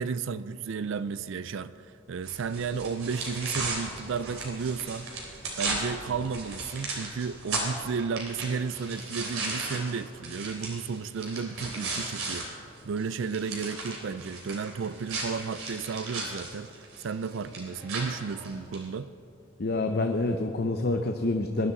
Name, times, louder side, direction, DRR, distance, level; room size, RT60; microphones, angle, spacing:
voice 1, 0.0-5.1 5.6-12.5 12.8-19.1, right 5 dB, 55° right, 14 dB, 0.4 m, -33 dB
sound 1, 2.2-12.4 12.8-18.8, right 3 dB, 75° right, 3.5 m, -36 dB
voice 2, 19.6-21.7, left 2 dB, 45° left, 5 dB, 0.7 m, -27 dB
21.0 x 12.0 x 4.1 m, 2.7 s
head